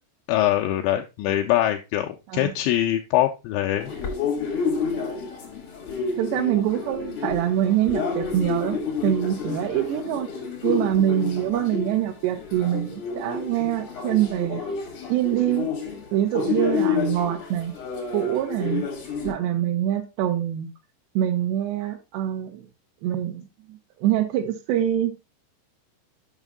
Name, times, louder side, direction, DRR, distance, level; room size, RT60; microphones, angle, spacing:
voice 1, 0.3-3.9, left 13 dB, 85° left, 2.7 m, -23 dB
sound 1, 3.8-19.3, left 5 dB, 65° left, 1.3 m, -30 dB
voice 2, 6.1-10.3 10.6-14.6 15.1-15.7 16.1-17.7 18.1-18.9 19.2-20.7 21.2-22.6 23.0-25.1, right 11 dB, 75° right, 2.6 m, -24 dB
7.2 x 5.6 x 3.5 m
omnidirectional pair, 5.6 m